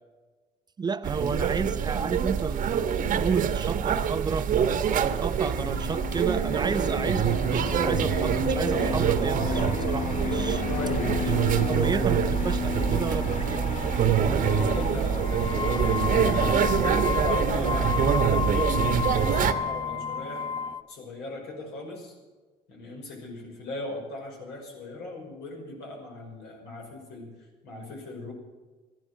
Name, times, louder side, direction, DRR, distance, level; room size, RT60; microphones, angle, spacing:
voice 1, 0.8-4.5 4.9-10.6 11.7-13.9, right 5 dB, 25° right, 14 dB, 0.5 m, -32 dB
sound 1, 1.0-19.5, right 7 dB, 55° right, 1.2 m, -25 dB
Fixed-wing aircraft airplane, 5.5-20.7, left 5 dB, 45° left, 1.3 m, -34 dB
voice 2, 10.7-11.2 14.6-20.5 20.9-22.2 22.7-28.3, left 2 dB, 85° left, 1 dB, 5.6 m, -38 dB
sound 2, 14.4-14.9 15.2-20.8, left 6 dB, 25° left, 0.7 m, -31 dB
14.5 x 11.0 x 8.0 m, 1.3 s
cardioid pair, 110°, 17 cm